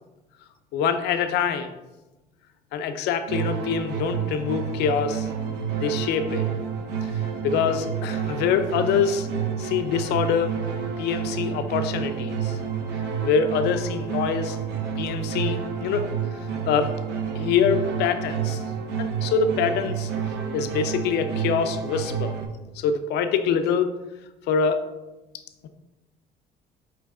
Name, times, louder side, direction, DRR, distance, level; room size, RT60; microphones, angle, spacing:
voice 1, 0.7-1.7 2.7-5.3 5.8-6.5 7.4-9.3 9.6-10.6 11.0-12.6 13.2-14.6 15.0-16.0 16.3-16.4 16.7-16.9 17.4-18.6 19.0-20.1 20.5-22.3 22.8-23.9 24.5-24.8, left 6 dB, 80° left, 9 dB, 0.4 m, -24 dB
sound 1, 3.3-22.5, right 7 dB, 85° right, 0.6 m, -29 dB
4.5 x 3.2 x 3.5 m, 1.0 s
cardioid pair, 110°, 17 cm